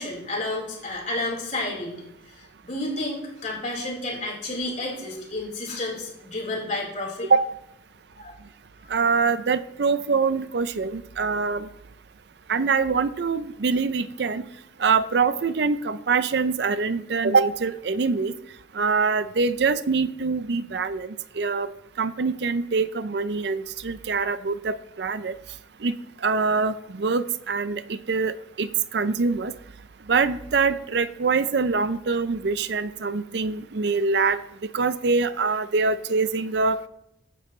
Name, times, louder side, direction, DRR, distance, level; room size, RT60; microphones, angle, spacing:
voice 1, 0.0-2.0 2.3-7.3 8.2-8.4, left 2 dB, 40° left, -2 dB, 4.1 m, -31 dB
voice 2, 8.9-11.7 12.5-14.4 14.8-18.3 18.7-21.7 22.0-25.3 25.8-25.9 26.2-29.5 30.1-34.4 34.7-36.8, right 4 dB, 55° right, 13 dB, 0.5 m, -24 dB
15.5 x 9.5 x 3.2 m, 0.81 s
head